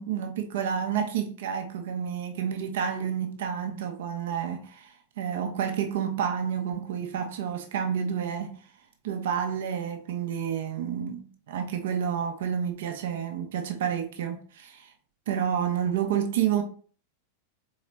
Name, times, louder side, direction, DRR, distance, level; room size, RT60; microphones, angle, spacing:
voice 1, 0.0-8.6 9.0-14.9 15.3-16.6, right 8 dB, 55° right, 0.7 m, -30 dB
4.0 x 3.9 x 3.3 m
figure-of-eight pair, 90°, 0 cm